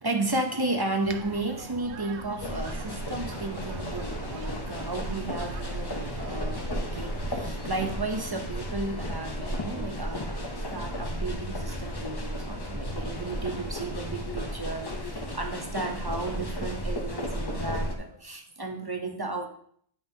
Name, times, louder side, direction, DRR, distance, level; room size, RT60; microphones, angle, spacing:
voice 1, 0.0-19.5, right 2 dB, 30° right, 4 dB, 0.5 m, -33 dB
sound 1, 1.0-7.5, right 6 dB, 80° right, 0.9 m, -43 dB
sound 2, 2.4-18.0, equal, 25° left, 0.6 m, -34 dB
9.3 x 5.2 x 2.7 m, 0.62 s
omnidirectional pair, 1.1 m